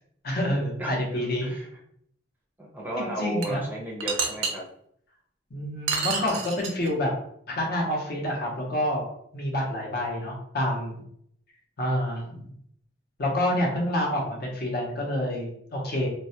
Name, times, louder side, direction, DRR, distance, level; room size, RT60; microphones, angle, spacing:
voice 1, 0.2-1.5 3.0-3.6 5.5-7.1 7.5-9.0 9.3-11.0 11.8-12.5 13.2-16.1, left 1 dB, 55° left, -2 dB, 0.7 m, -28 dB
voice 2, 2.6-4.6, right 1 dB, 10° right, -3 dB, 0.5 m, -33 dB
sound 1, 3.4-3.5 4.0-4.5 5.9-6.9, right 5 dB, 80° right, 0.4 m, -28 dB
2.2 x 2.0 x 2.7 m, 0.69 s
head